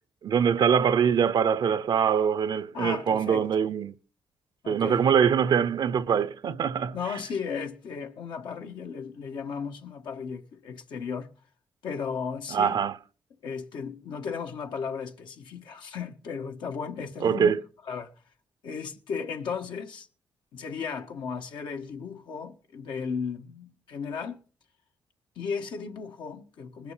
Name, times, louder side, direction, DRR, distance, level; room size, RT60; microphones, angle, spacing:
voice 1, 0.2-3.9 4.7-7.0 12.5-12.9 17.2-17.6, right 7 dB, 65° right, 0.7 m, -23 dB
voice 2, 2.7-3.5 4.6-5.0 6.9-11.3 11.8-12.8 13.4-17.6 17.9-18.1 18.6-20.1 20.5-24.4 25.3-26.9, left 6 dB, 80° left, 1.5 m, -35 dB
20.0 x 6.7 x 5.7 m
cardioid pair, 70°, 8 cm